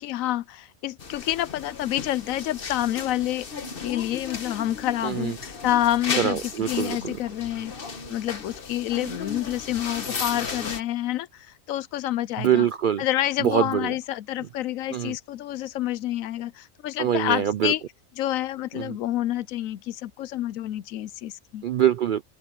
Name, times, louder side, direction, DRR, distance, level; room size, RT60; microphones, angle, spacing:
voice 1, 0.0-3.5 3.8-6.4 6.7-7.7 8.1-12.7 13.0-17.8 18.2-21.6, left 13 dB, 90° left, 1.0 m, -28 dB
sound 1, 1.0-10.8, left 5 dB, 45° left, 1.4 m, -35 dB
voice 2, 5.0-5.4 6.2-7.2 12.4-13.0 13.4-13.9 14.9-15.2 17.0-17.7 18.7-19.0 21.6-22.2, right 10 dB, 70° right, 0.4 m, -24 dB
open air
omnidirectional pair, 1.4 m